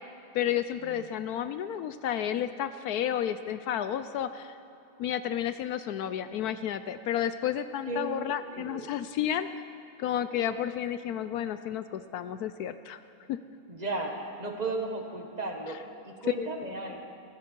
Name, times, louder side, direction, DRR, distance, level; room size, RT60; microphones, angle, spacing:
voice 1, 0.3-4.6 5.0-9.5 10.0-13.0 13.3-13.4 16.4-16.5, left 10 dB, 70° left, 12 dB, 0.9 m, -31 dB
voice 2, 7.9-8.8 13.7-17.0, right 2 dB, 25° right, 2 dB, 1.5 m, -35 dB
18.0 x 16.0 x 4.6 m, 2.9 s
omnidirectional pair, 1.9 m